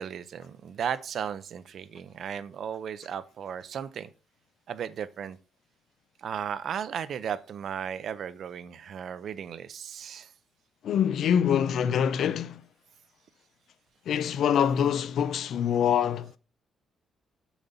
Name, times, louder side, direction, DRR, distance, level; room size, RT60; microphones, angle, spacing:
voice 1, 0.0-4.1 4.7-5.4 6.2-10.3, right 8 dB, 55° right, 0.6 m, -35 dB
voice 2, 10.8-12.6 14.1-16.4, left 8 dB, 60° left, 0.5 m, -25 dB
7.1 x 7.1 x 4.0 m
cardioid pair, 160°, 0 cm